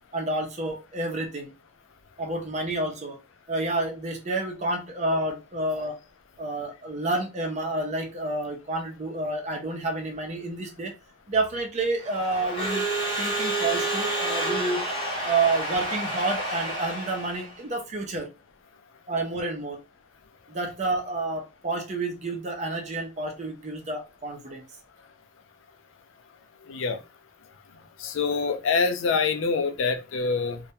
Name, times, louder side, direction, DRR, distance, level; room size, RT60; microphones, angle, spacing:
voice 1, 0.1-1.5 2.2-3.2 3.5-6.0 6.4-11.0 11.3-12.9 13.2-14.8 15.2-18.3 19.1-19.8 20.5-24.7, right 2 dB, 35° right, 0.6 m, -29 dB
Crowd / Alarm, 12.0-17.6, right 1 dB, 25° left, 0.8 m, -29 dB
voice 2, 26.7-27.0 28.0-30.6, left 4 dB, 85° left, 0.4 m, -25 dB
2.2 x 2.1 x 2.8 m
head